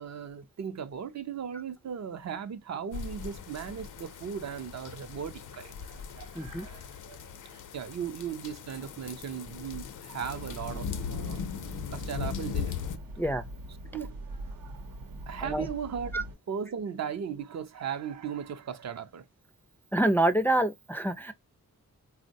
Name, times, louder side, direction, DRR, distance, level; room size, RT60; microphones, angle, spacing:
voice 1, 0.0-11.4 11.9-12.8 13.9-14.2 15.3-19.3, right 7 dB, 55° right, 0.5 m, -37 dB
sound 1, 2.9-13.0, left 6 dB, 70° left, 0.5 m, -39 dB
voice 2, 6.3-6.6 13.2-13.4 15.4-15.7 16.1-16.2 19.9-21.3, right 1 dB, 5° left, 0.3 m, -26 dB
sound 2, 10.2-16.3, right 1 dB, 85° right, 0.8 m, -42 dB
3.6 x 2.0 x 2.6 m
wide cardioid pair, 110°, 33 cm